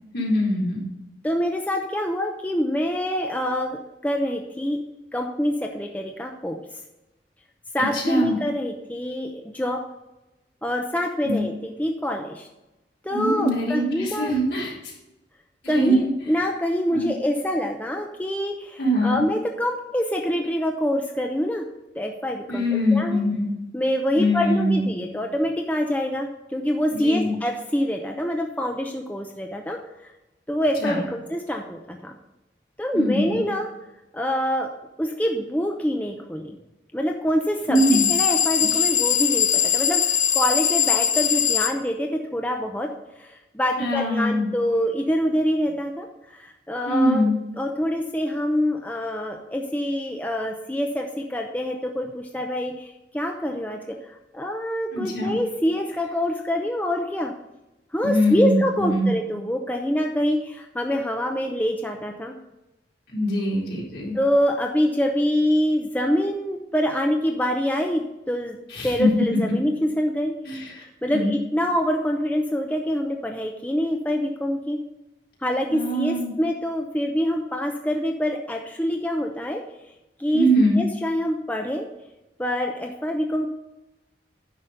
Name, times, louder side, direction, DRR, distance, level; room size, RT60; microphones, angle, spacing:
voice 1, 0.1-0.8 7.8-8.4 11.2-11.4 13.1-14.7 15.6-15.9 16.9-17.1 18.8-19.2 22.5-23.5 24.2-24.9 26.9-27.3 30.8-31.0 32.9-33.4 37.7-38.1 38.7-38.8 43.8-44.5 46.9-47.3 54.9-55.4 58.0-59.1 63.1-64.2 68.7-69.1 70.4-70.8 71.1-71.3 75.7-76.3 80.3-80.8, equal, 65° left, -4 dB, 4.1 m, -23 dB
voice 2, 1.2-4.8 5.1-6.6 7.7-9.8 10.6-12.5 13.0-14.3 15.7-21.7 21.9-22.6 22.9-23.2 23.7-30.1 30.5-32.2 32.8-33.7 34.1-34.7 35.0-36.6 36.9-42.9 43.2-47.3 47.6-54.0 54.3-57.3 57.9-62.4 64.1-68.6 68.8-70.3 71.0-74.8 75.4-79.6 80.2-80.5 80.7-81.9 82.4-83.5, equal, 10° left, 2 dB, 0.7 m, -25 dB
sound 1, 37.8-41.7, left 8 dB, 45° left, 0.7 m, -21 dB
9.8 x 6.2 x 5.3 m, 0.97 s
head